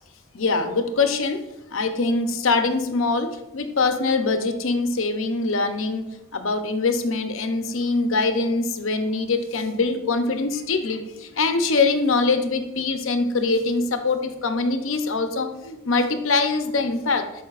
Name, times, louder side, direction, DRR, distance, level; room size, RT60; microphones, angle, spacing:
voice 1, 0.3-17.4, left 3 dB, 60° left, 7 dB, 0.7 m, -23 dB
11.5 x 5.0 x 2.4 m, 0.92 s
head